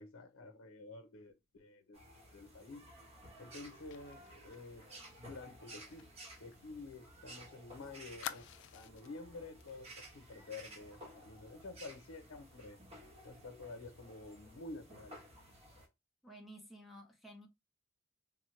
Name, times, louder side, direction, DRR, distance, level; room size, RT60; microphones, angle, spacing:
voice 1, 0.0-2.0 2.3-2.8 3.4-4.9 5.1-6.1 6.4-8.5 8.7-12.8 13.2-15.2, left 3 dB, 85° left, 0.7 m, -50 dB
sound 1, 1.9-15.9, right 1 dB, 30° right, 0.9 m, -55 dB
Fire, 3.9-7.3 7.6-7.7 8.2-9.2 9.6-9.8 10.1-10.3, left 10 dB, 60° left, 0.3 m, -50 dB
voice 2, 16.2-17.5, equal, ahead, 0.6 m, -53 dB
3.6 x 2.1 x 3.0 m
head